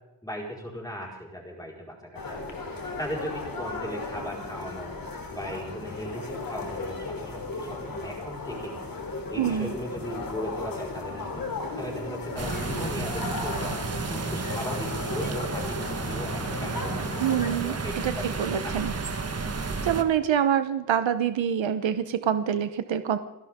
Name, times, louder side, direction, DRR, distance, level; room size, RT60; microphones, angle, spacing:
voice 1, 0.2-2.4 2.7-4.9 5.3-8.8 9.3-11.4 11.8-13.7 14.0-17.0 17.6-18.9, equal, 10° left, -2 dB, 4.7 m, -37 dB
sound 1, 2.1-17.5, left 3 dB, 50° left, 3.4 m, -36 dB
voice 2, 9.4-9.7 17.2-17.7 18.0-18.9 19.8-23.2, right 9 dB, 90° right, 10 dB, 1.0 m, -26 dB
sound 2, 12.4-20.0, right 4 dB, 35° right, 1.4 m, -32 dB
30.0 x 11.5 x 3.7 m, 1.0 s
wide cardioid pair, 140°, 44 cm